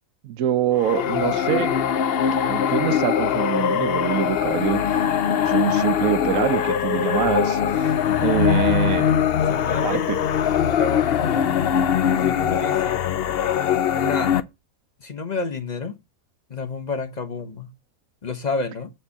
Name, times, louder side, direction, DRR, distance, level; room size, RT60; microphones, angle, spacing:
voice 1, 0.2-1.8 2.5-7.9 8.2-9.1 9.8-10.2, right 11 dB, 70° right, 1.0 m, -25 dB
sound 1, 0.8-14.4, left 8 dB, 60° left, 0.6 m, -22 dB
voice 2, 9.5-10.1 10.6-11.6 12.2-13.0 14.0-14.3 15.0-15.9 16.5-17.7 18.2-18.9, left 4 dB, 35° left, 0.9 m, -30 dB
7.6 x 4.4 x 7.0 m
omnidirectional pair, 1.6 m